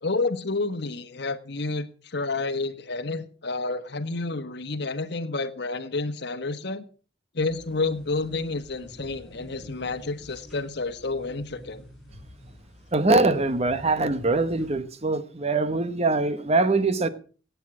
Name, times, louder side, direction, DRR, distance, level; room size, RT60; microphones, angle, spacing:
voice 1, 0.0-6.8 7.3-11.8, left 3 dB, 65° left, 1.3 m, -30 dB
sound 1, 7.4-14.8, equal, ahead, 7.0 m, -48 dB
voice 2, 12.9-17.1, right 3 dB, 35° right, 1.1 m, -23 dB
17.0 x 8.3 x 6.1 m
head